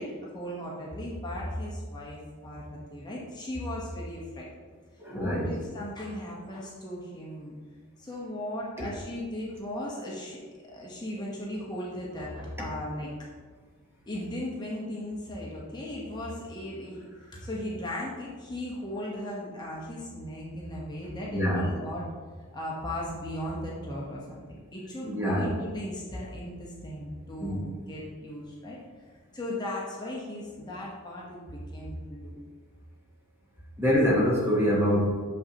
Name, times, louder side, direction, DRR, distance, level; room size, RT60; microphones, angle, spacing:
voice 1, 0.0-4.5 5.1-7.5 8.0-13.1 14.1-17.0 17.3-22.1 22.5-28.8 29.3-32.3, left 1 dB, 20° left, -4 dB, 1.0 m, -37 dB
voice 2, 5.0-5.5 8.8-8.9 21.3-21.7 25.0-25.5 27.4-27.7 33.8-35.2, equal, 10° right, -4 dB, 1.0 m, -25 dB
6.5 x 5.5 x 2.9 m, 1.5 s
head